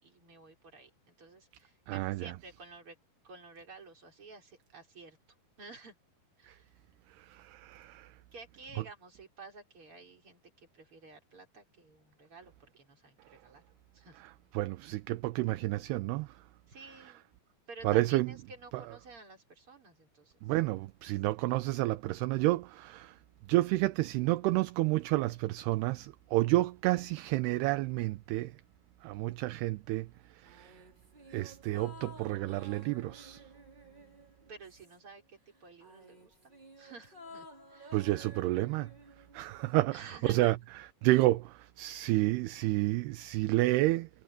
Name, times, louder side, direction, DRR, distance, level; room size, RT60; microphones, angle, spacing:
voice 1, 0.0-3.0 3.2-5.2 5.6-6.0 6.4-6.8 8.3-13.6 13.9-14.2 16.7-17.2 17.7-20.4 33.8-36.5 36.8-38.0 39.9-40.6, right 4 dB, 30° right, 5.7 m, -52 dB
voice 2, 1.9-2.3 6.5-6.6 7.2-8.1 14.5-16.3 17.8-18.3 18.7-18.8 20.4-23.2 23.5-28.5 29.0-30.1 30.3-30.8 31.3-33.5 37.9-38.9 39.3-40.6 41.0-44.1, right 18 dB, 80° right, 2.6 m, -30 dB
sound 1, 30.4-35.2 35.5-39.8 40.1-40.2, equal, 10° right, 4.4 m, -53 dB
omnidirectional pair, 4.9 m